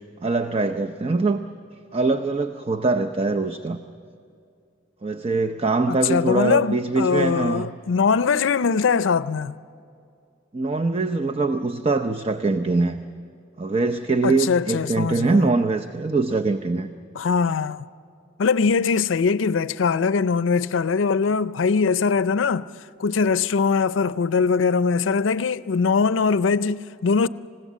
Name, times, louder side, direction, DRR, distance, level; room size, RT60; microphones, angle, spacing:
voice 1, 0.2-1.4 1.9-3.8 5.0-7.7 10.5-13.0 13.6-16.9, right 3 dB, 30° right, 0.6 m, -23 dB
voice 2, 5.9-9.6 14.2-15.5 17.2-17.8 18.4-22.7 23.0-27.3, left 5 dB, 80° left, 0.5 m, -21 dB
28.5 x 16.5 x 7.5 m
head